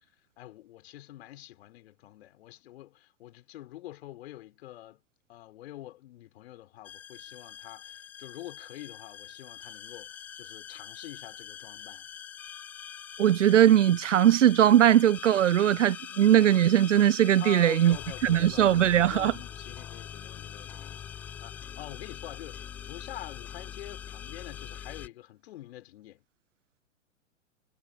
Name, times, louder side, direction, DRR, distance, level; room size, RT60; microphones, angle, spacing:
voice 1, 0.4-5.0 5.3-12.1 17.4-26.2, left 14 dB, 50° left, 5.0 m, -46 dB
sound 1, 6.9-25.1, left 9 dB, 5° left, 0.3 m, -43 dB
voice 2, 13.2-18.0 18.2-19.3, right 11 dB, 65° right, 0.7 m, -20 dB
figure-of-eight pair, 105°, 39 cm